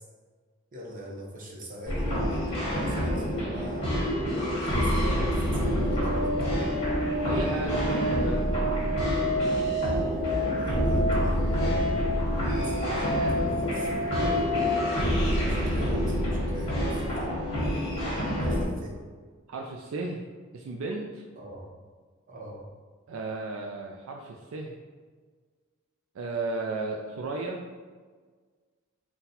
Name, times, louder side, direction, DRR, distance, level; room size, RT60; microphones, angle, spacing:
voice 1, 0.7-4.0 4.6-6.3 10.5-11.9 12.6-14.7 15.3-17.3 18.4-19.0 21.4-21.7 22.3-22.7, right 1 dB, 40° right, -3 dB, 0.9 m, -42 dB
abstract dark ambience beat, 1.9-18.7, equal, 30° left, 1.3 m, -28 dB
sound 1, 5.8-14.8, left 1 dB, 60° left, 0.6 m, -30 dB
voice 2, 7.2-8.5 19.5-20.2 20.5-21.2 23.1-24.8 26.1-27.6, right 3 dB, 70° right, 0 dB, 0.4 m, -34 dB
3.9 x 2.2 x 4.1 m, 1.5 s
head